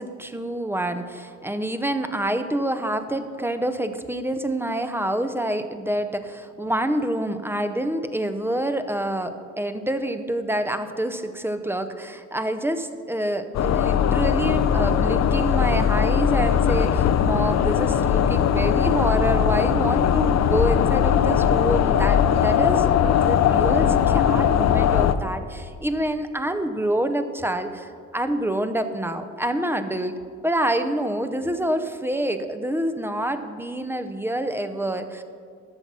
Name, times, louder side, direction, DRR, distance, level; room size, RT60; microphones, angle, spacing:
voice 1, 0.0-30.2 30.4-35.2, right 1 dB, 10° right, 9 dB, 0.7 m, -27 dB
sound 1, 13.5-25.2, left 8 dB, 60° left, 0.6 m, -20 dB
13.5 x 5.9 x 5.6 m, 2.2 s
cardioid pair, 90°, 30 cm